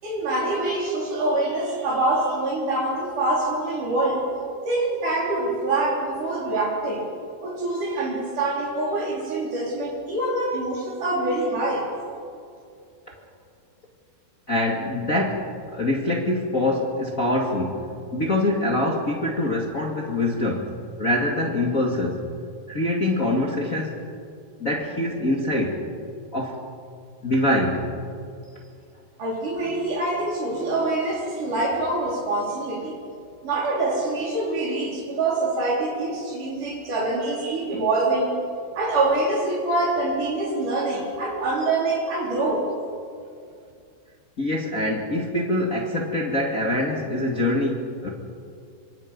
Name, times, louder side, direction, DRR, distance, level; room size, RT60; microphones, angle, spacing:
voice 1, 0.0-4.3 4.7-7.1 7.4-11.9 29.2-33.0 33.4-38.4 38.8-42.7, right 2 dB, 60° right, -2 dB, 5.6 m, -25 dB
voice 2, 14.5-17.8 18.1-20.7 21.0-22.2 22.7-24.0 24.6-25.8 26.3-26.6 27.2-27.8 37.7-37.8 44.4-48.1, left 1 dB, 30° left, -1 dB, 1.9 m, -24 dB
27.0 x 25.5 x 5.3 m, 2.3 s
omnidirectional pair, 4.2 m